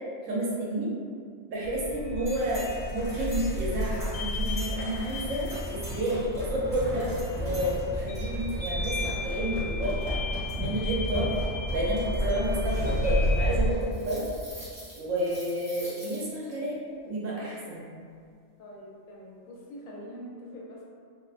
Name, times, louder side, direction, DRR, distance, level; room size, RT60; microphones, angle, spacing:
voice 1, 0.2-0.9 1.5-2.7 2.9-10.1 10.6-11.4 11.7-14.2 15.0-17.9, right 1 dB, 75° right, -5 dB, 1.0 m, -30 dB
sound 1, 1.6-13.8, equal, 55° left, 1.0 m, -32 dB
sound 2, 2.3-16.5, equal, 5° right, 0.7 m, -38 dB
voice 2, 18.6-20.8, equal, 80° left, -5 dB, 1.0 m, -44 dB
2.6 x 2.1 x 2.4 m, 2.2 s
omnidirectional pair, 1.4 m